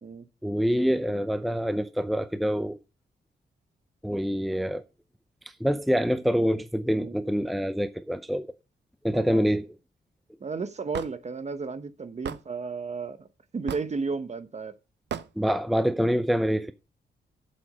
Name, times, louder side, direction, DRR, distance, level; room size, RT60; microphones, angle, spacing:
voice 1, 0.4-2.8 4.0-4.8 5.6-8.5 9.0-9.7 15.4-16.7, equal, ahead, 0.6 m, -26 dB
voice 2, 9.1-9.4 10.4-13.3 13.5-14.7, right 4 dB, 35° right, 1.1 m, -33 dB
Hammer / Wood, 10.9-11.1 12.2-12.4 13.7-14.0 15.1-15.3, right 9 dB, 70° right, 0.7 m, -34 dB
7.8 x 7.7 x 5.4 m
cardioid pair, 105°, 19 cm